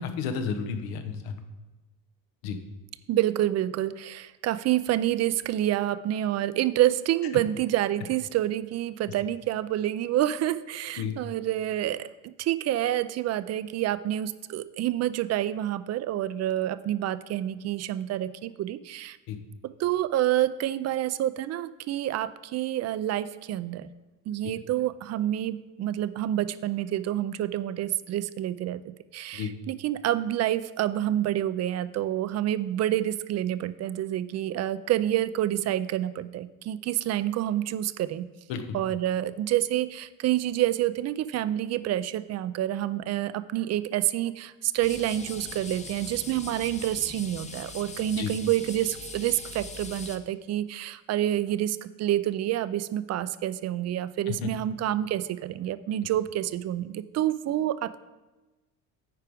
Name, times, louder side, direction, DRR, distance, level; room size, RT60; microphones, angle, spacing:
voice 1, 0.0-1.3 2.4-2.6 11.0-11.1 19.3-19.4 29.3-29.5 38.5-38.6 48.2-48.3 54.3-54.5, left 6 dB, 80° left, 7 dB, 1.0 m, -31 dB
voice 2, 3.1-19.2 19.6-23.9 24.3-38.2 38.7-58.0, right 13 dB, 45° right, 14 dB, 0.5 m, -28 dB
sound 1, 44.8-50.2, left 4 dB, 20° left, 0.8 m, -41 dB
9.4 x 4.7 x 5.1 m, 1.1 s
cardioid pair, 100°, 36 cm